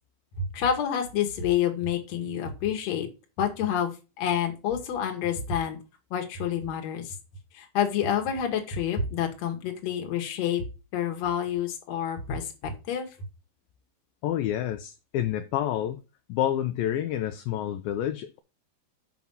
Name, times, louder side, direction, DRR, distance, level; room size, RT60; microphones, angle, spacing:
voice 1, 0.4-3.1 3.4-5.8 6.1-7.1 7.5-10.6 10.9-13.1, left 8 dB, 55° left, 2.0 m, -28 dB
voice 2, 14.2-16.0 16.3-18.4, left 11 dB, 80° left, 2.1 m, -28 dB
6.1 x 5.9 x 5.5 m
omnidirectional pair, 4.7 m